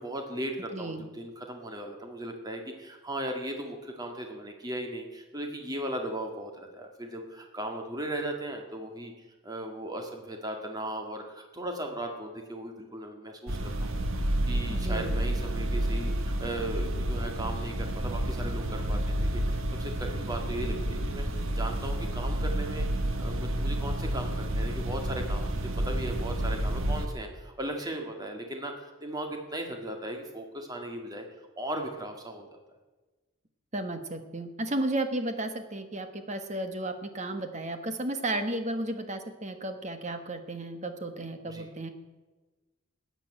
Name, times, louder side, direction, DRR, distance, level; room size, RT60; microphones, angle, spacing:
voice 1, 0.0-9.1 9.4-13.9 14.2-21.2 21.5-22.9 23.2-31.2 31.6-32.6 41.4-41.7, right 1 dB, 20° right, 3 dB, 2.0 m, -37 dB
sound 1, 13.5-27.1, right 1 dB, 80° right, 1.5 m, -30 dB
voice 2, 14.7-15.2 33.7-41.9, right 1 dB, 35° right, 7 dB, 1.4 m, -33 dB
13.5 x 9.0 x 8.8 m, 1.2 s
head